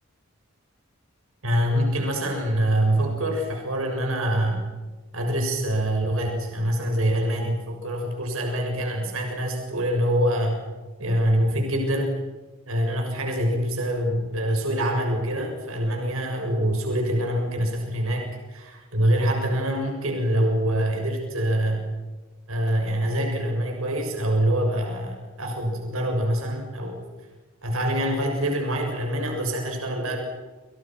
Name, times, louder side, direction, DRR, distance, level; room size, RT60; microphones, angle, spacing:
voice 1, 1.4-4.6 5.1-10.6 11.0-12.1 12.7-18.2 18.5-21.8 22.5-27.0 27.6-30.2, right 1 dB, 70° right, 2 dB, 6.8 m, -25 dB
29.5 x 29.0 x 6.1 m, 1.3 s
head